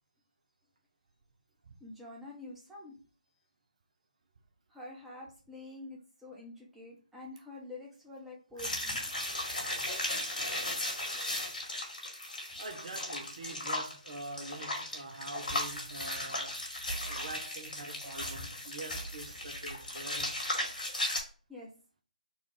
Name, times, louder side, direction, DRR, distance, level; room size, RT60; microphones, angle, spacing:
voice 1, 1.8-2.9 4.7-9.0 21.5-21.7, left 2 dB, 5° right, 0.8 m, -47 dB
sound 1, 8.6-21.2, left 1 dB, 75° left, 1.8 m, -36 dB
voice 2, 8.6-8.9 12.6-16.6 17.1-20.4, right 2 dB, 50° right, 0.7 m, -45 dB
4.0 x 2.4 x 4.4 m
figure-of-eight pair, 145°, 5 cm